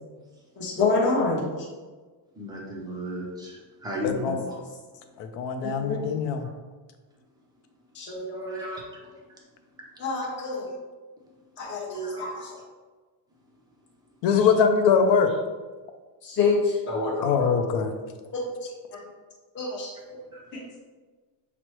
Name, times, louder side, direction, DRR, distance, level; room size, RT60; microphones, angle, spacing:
voice 1, 0.6-1.7 4.5-4.6 5.6-6.0 7.9-8.7 10.0-10.7 11.6-12.6 14.4-14.6 15.2-15.4 16.2-17.5 18.3-18.7 19.5-19.9 20.5-20.6, left 3 dB, 25° left, -5 dB, 0.7 m, -28 dB
voice 2, 2.3-4.5 8.3-8.8 12.0-12.3, left 1 dB, 10° right, -3 dB, 0.3 m, -35 dB
voice 3, 4.0-4.4 5.2-6.4 14.2-15.3 17.2-17.9, left 6 dB, 65° left, 6 dB, 0.6 m, -22 dB
5.8 x 2.1 x 3.0 m, 1.3 s
cardioid pair, 165°, 47 cm